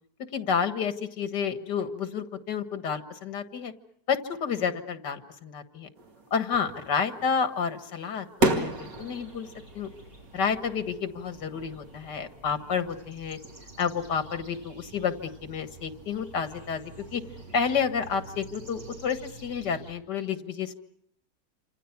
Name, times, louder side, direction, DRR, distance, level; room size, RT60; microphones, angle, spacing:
voice 1, 0.3-3.7 4.1-5.9 6.3-9.5 9.7-9.9 10.3-13.4 13.8-17.2 17.5-20.7, left 6 dB, 80° left, 9 dB, 2.2 m, -30 dB
sound 1, 6.0-19.8, right 2 dB, 90° right, 2.7 m, -37 dB
sound 2, 8.7-19.9, right 2 dB, 25° right, 7.1 m, -49 dB
28.0 x 27.5 x 5.9 m, 0.69 s
omnidirectional pair, 1.8 m